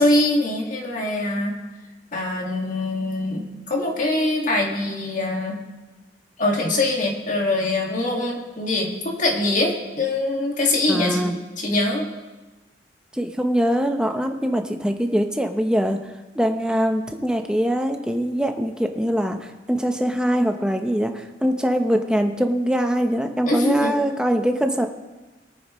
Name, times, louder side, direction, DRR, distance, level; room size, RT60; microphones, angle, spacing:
voice 1, 0.0-1.5 2.1-5.6 6.4-11.3 11.6-12.1 23.5-24.0, left 2 dB, 45° left, 0 dB, 2.1 m, -23 dB
voice 2, 10.9-11.4 13.1-16.0 16.3-24.9, equal, 5° right, 5 dB, 0.9 m, -22 dB
22.5 x 9.3 x 3.2 m, 1.2 s
head